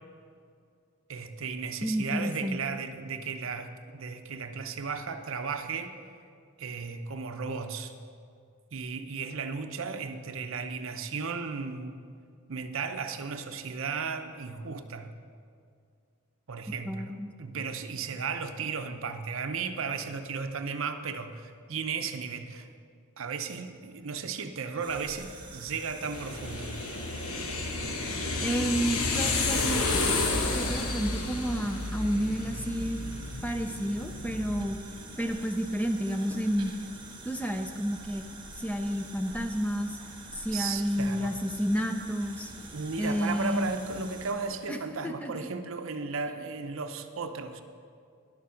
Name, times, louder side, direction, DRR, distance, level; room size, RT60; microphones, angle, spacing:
voice 1, 1.1-5.9 6.6-7.9 8.7-12.0 12.5-15.1 16.5-22.7 23.2-26.8 40.5-41.3 42.7-47.6, right 5 dB, 60° right, 8 dB, 0.7 m, -35 dB
voice 2, 1.8-2.6 16.9-17.3 28.4-33.0 33.4-34.8 35.2-36.7 37.2-38.2 38.6-40.0 40.3-42.5 43.0-43.7 44.7-44.8 45.0-45.3, equal, 5° left, 5 dB, 0.5 m, -30 dB
sound 1, 24.8-44.7, right 2 dB, 20° right, 1.4 m, -46 dB
sound 2, 26.1-34.7, left 3 dB, 80° left, 1.1 m, -31 dB
11.0 x 7.0 x 6.3 m, 2.3 s
head